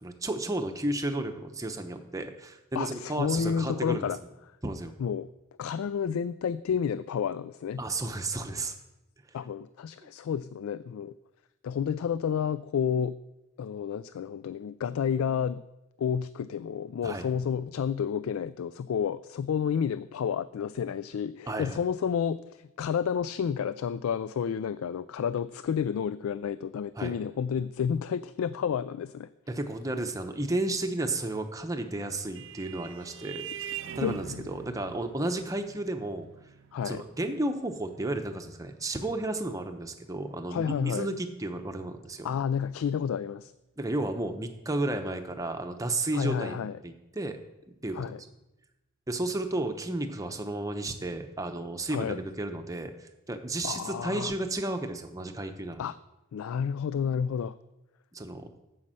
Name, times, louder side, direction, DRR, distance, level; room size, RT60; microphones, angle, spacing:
voice 1, 0.0-4.1 4.6-4.9 7.8-8.7 10.0-10.1 17.0-17.3 21.5-21.8 27.0-27.1 29.5-33.5 33.9-36.3 36.8-42.3 43.8-46.6 46.8-47.4 47.8-48.1 49.1-55.8 58.1-58.4, right 2 dB, 15° right, 6 dB, 0.8 m, -33 dB
voice 2, 2.7-4.2 5.0-5.3 5.6-7.8 9.3-11.1 11.6-13.2 13.6-15.6 16.0-29.3 34.0-34.2 36.7-37.0 40.5-41.1 42.2-43.5 46.1-46.8 47.9-48.2 51.9-52.2 53.6-54.3 55.8-56.0 56.3-57.6, left 7 dB, 90° left, 15 dB, 0.3 m, -30 dB
Vehicle horn car horn honking, 31.7-40.7, right 9 dB, 60° right, 0.4 m, -45 dB
9.5 x 6.4 x 7.6 m, 0.96 s
head